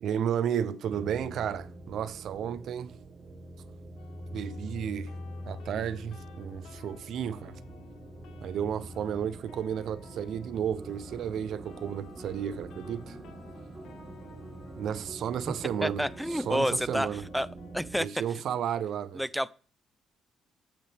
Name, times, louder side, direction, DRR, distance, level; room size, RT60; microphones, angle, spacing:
voice 1, 0.0-3.0 4.3-5.1 5.5-7.6 8.4-13.2 14.8-17.2 18.0-19.2, right 9 dB, 70° right, 0.6 m, -33 dB
sound 1, 0.9-18.0, right 1 dB, 45° right, 1.4 m, -45 dB
sound 2, 4.0-17.8, left 8 dB, 85° left, 1.5 m, -55 dB
sound 3, 10.8-16.6, right 1 dB, 20° right, 1.7 m, -50 dB
voice 2, 15.8-17.1 17.3-17.5 17.7-18.1 19.1-19.5, equal, ahead, 0.5 m, -29 dB
15.0 x 5.6 x 3.5 m
cardioid pair, 90°, 0 cm